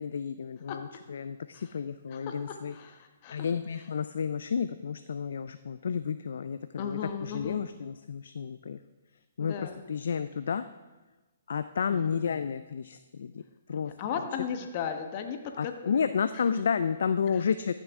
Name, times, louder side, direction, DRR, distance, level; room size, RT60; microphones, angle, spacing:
voice 1, 0.0-2.7 3.3-8.8 9.4-10.6 11.5-13.4 13.7-13.9 15.6-17.7, left 6 dB, 70° left, 11 dB, 0.3 m, -31 dB
voice 2, 2.1-3.5 6.8-7.7 9.4-9.8 11.9-12.2 13.8-16.0 16.3-16.4 17.3-17.4, left 7 dB, 40° left, 6 dB, 1.1 m, -37 dB
14.5 x 6.6 x 3.6 m, 1.2 s
hypercardioid pair, 140°, 0 cm